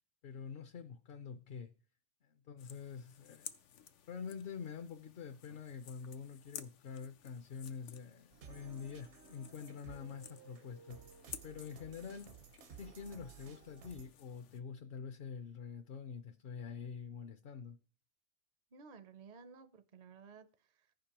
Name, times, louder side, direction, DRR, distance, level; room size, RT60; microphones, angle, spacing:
voice 1, 0.2-1.7 2.2-3.5 4.1-11.0 11.4-12.3 12.8-17.8, left 6 dB, 60° left, 0.7 m, -46 dB
sound 1, 2.6-14.6, left 9 dB, 90° left, 1.0 m, -55 dB
sound 2, 8.3-14.1, right 7 dB, 75° right, 1.1 m, -56 dB
voice 2, 18.7-20.9, right 5 dB, 50° right, 0.6 m, -56 dB
15.0 x 5.2 x 2.9 m
omnidirectional pair, 1.2 m